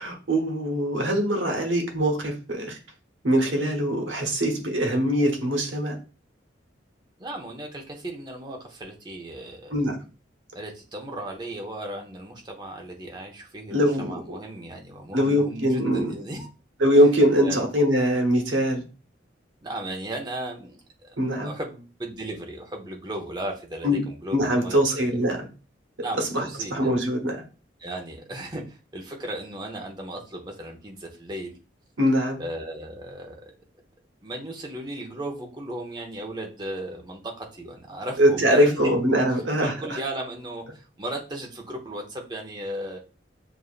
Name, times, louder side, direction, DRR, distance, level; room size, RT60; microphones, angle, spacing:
voice 1, 0.0-2.8 3.2-6.0 9.7-10.0 13.7-14.4 15.1-16.1 16.8-18.8 21.2-21.5 23.8-24.0 24.3-25.5 26.2-27.4 32.0-32.4 38.2-40.0, equal, 75° right, 2 dB, 1.1 m, -22 dB
voice 2, 7.2-9.7 10.5-16.5 17.4-17.6 19.6-21.1 21.4-25.2 26.0-27.0 27.8-31.5 32.4-33.5 34.2-38.9 39.6-43.0, right 1 dB, 25° right, 1 dB, 0.8 m, -36 dB
6.9 x 2.5 x 2.4 m, 0.33 s
head